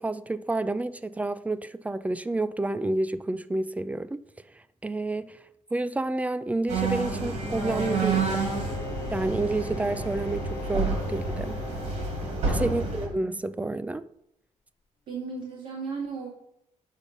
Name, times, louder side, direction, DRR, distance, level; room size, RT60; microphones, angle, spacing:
voice 1, 0.0-4.2 4.8-5.4 5.7-8.4 9.1-11.6 12.5-14.1, right 2 dB, 10° right, 0.3 m, -29 dB
sound 1, 6.7-13.1, right 3 dB, 65° right, 2.5 m, -29 dB
Bowed string instrument, 7.4-13.0, left 4 dB, 30° left, 0.8 m, -41 dB
voice 2, 12.6-13.2 15.1-16.3, right 5 dB, 85° right, 2.5 m, -36 dB
8.3 x 6.0 x 5.2 m
cardioid pair, 135°, 13 cm